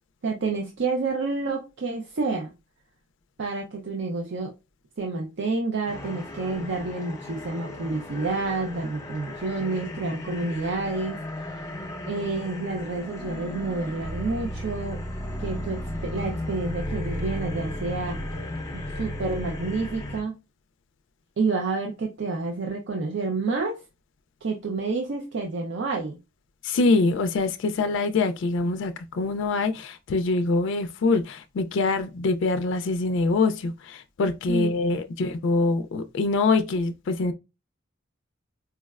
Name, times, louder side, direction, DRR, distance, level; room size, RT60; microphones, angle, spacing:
voice 1, 0.2-2.5 3.4-4.5 5.0-11.2 12.1-15.0 15.4-18.2 19.0-20.4 21.4-23.8 24.4-26.2 34.5-35.0, right 3 dB, 60° right, 0.5 m, -29 dB
sound 1, 5.9-20.2, left 1 dB, 15° left, 0.8 m, -35 dB
voice 2, 26.6-37.3, left 3 dB, 65° left, 0.3 m, -24 dB
4.5 x 2.0 x 2.3 m
head